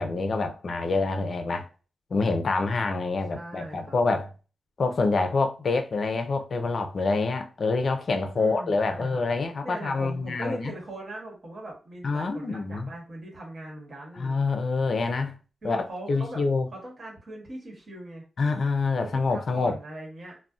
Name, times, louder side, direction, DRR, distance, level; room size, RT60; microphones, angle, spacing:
voice 1, 0.0-1.7 2.1-4.3 4.8-10.7 12.0-12.9 14.2-15.4 15.6-16.7 18.4-19.7, left 3 dB, 55° left, 0.4 m, -26 dB
voice 2, 3.3-4.0 8.3-9.2 9.6-14.4 15.6-16.4 16.7-18.2 19.0-20.4, right 1 dB, 50° right, 1.2 m, -40 dB
2.6 x 2.0 x 2.3 m
cardioid pair, 95°, 0 cm